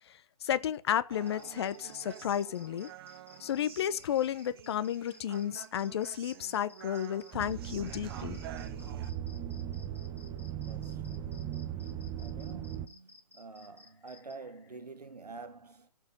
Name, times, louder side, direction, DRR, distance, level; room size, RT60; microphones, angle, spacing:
voice 1, 0.4-2.9 3.4-8.4, left 10 dB, 40° left, 0.9 m, -32 dB
Human voice, 1.1-9.1, right 11 dB, 35° right, 1.1 m, -50 dB
sound 1, 1.2-14.3, left 3 dB, 75° left, 3.3 m, -57 dB
sound 2, 7.3-12.9, right 10 dB, 15° right, 1.0 m, -38 dB
voice 2, 10.5-11.9 12.2-15.9, right 3 dB, 75° right, 1.7 m, -48 dB
15.0 x 6.3 x 5.2 m
figure-of-eight pair, 130°, 20 cm